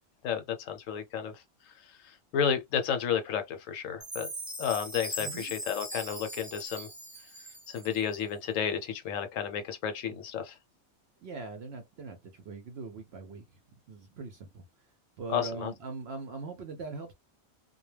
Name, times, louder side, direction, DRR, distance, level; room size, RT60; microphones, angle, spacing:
voice 1, 0.2-1.4 2.0-4.3 4.6-6.9 7.7-10.6 15.3-15.7, left 8 dB, 70° left, 0.9 m, -32 dB
Chime, 4.0-8.2, equal, 15° right, 0.8 m, -40 dB
voice 2, 5.2-5.5 11.2-13.6 13.9-17.1, right 4 dB, 65° right, 0.6 m, -42 dB
2.2 x 2.2 x 3.1 m
omnidirectional pair, 1.5 m